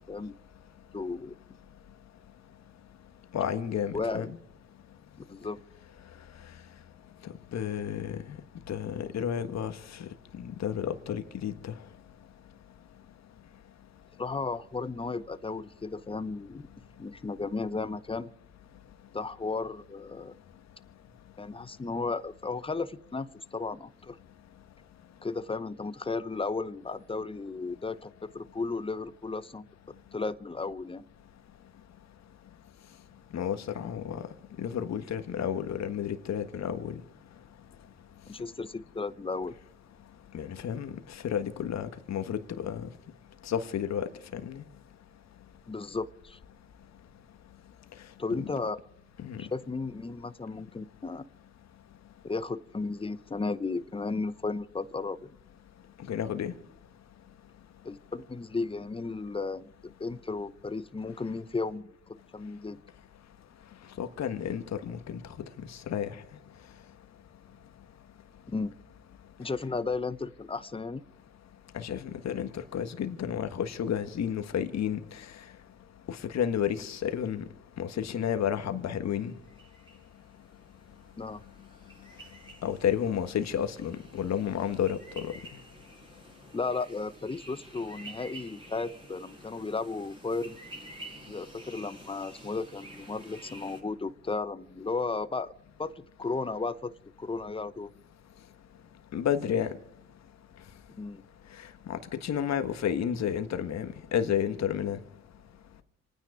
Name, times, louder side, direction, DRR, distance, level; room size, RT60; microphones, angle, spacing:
voice 1, 0.9-1.3 3.9-4.3 5.3-5.6 14.2-16.6 17.0-18.3 19.1-20.3 21.4-24.2 25.2-29.6 30.1-31.0 38.3-39.5 45.7-46.4 48.2-48.8 49.4-51.2 52.2-55.3 57.8-59.7 60.0-62.8 68.5-68.7 69.4-71.0 81.2-81.4 86.5-90.6 91.3-95.5 95.8-96.9 97.2-97.9 101.0-101.2, left 3 dB, 15° left, 0.9 m, -34 dB
voice 2, 3.3-4.3 7.5-8.2 8.7-9.7 10.4-11.7 33.3-34.2 34.6-36.9 40.3-40.9 41.2-42.9 43.5-44.6 48.4-48.5 49.2-49.4 56.1-56.5 64.0-65.2 65.9-66.1 71.7-75.0 76.1-77.4 77.8-79.3 82.6-85.3 99.1-99.7 101.9-105.0, left 9 dB, 60° left, 1.6 m, -31 dB
sound 1, 79.3-93.8, right 2 dB, 15° right, 5.1 m, -50 dB
27.0 x 9.7 x 5.0 m
supercardioid pair, 75°, 31 cm